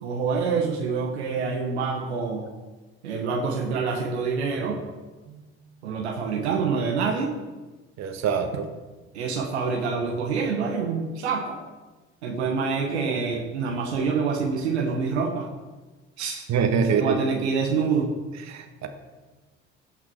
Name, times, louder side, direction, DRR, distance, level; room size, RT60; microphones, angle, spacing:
voice 1, 0.0-2.5 3.0-4.8 5.8-7.4 9.1-11.6 12.2-15.5 16.2-16.4 16.9-18.1, right 5 dB, 85° right, 1 dB, 1.1 m, -26 dB
voice 2, 8.0-8.7 16.5-17.2 18.4-18.9, right 6 dB, 55° right, 5 dB, 1.6 m, -25 dB
17.0 x 6.0 x 4.6 m, 1.2 s
hypercardioid pair, 60°, 32 cm